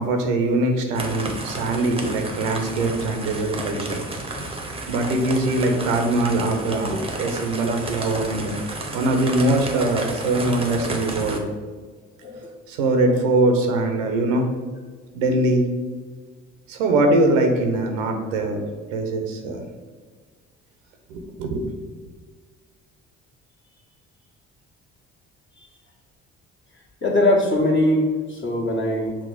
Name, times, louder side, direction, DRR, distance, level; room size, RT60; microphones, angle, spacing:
voice 1, 0.0-4.0 4.9-8.5 8.9-11.4 12.7-14.5 15.1-15.7 16.7-18.6 18.9-19.6 21.1-21.8, right 2 dB, 80° right, 3 dB, 0.7 m, -22 dB
sound 1, 0.9-11.4, right 2 dB, 15° right, 0.8 m, -32 dB
voice 2, 27.0-29.2, left 1 dB, 30° left, -2 dB, 1.4 m, -21 dB
6.2 x 2.1 x 3.9 m, 1.5 s
hypercardioid pair, 50°, 38 cm